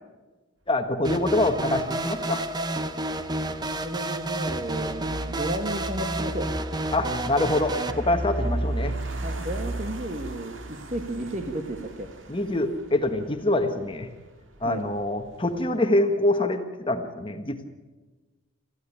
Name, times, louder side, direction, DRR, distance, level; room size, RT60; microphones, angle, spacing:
voice 1, 0.7-2.4 6.9-9.0 12.3-14.1 14.6-17.7, left 1 dB, 25° left, 7 dB, 1.4 m, -25 dB
sound 1, 0.9-15.8, right 1 dB, 65° right, 2.1 m, -36 dB
sound 2, 1.0-7.9, right 2 dB, 20° right, 0.9 m, -30 dB
voice 2, 3.8-6.5 9.2-12.1 14.6-14.8, right 1 dB, 35° right, 4 dB, 1.4 m, -33 dB
18.0 x 14.5 x 9.9 m, 1.2 s
head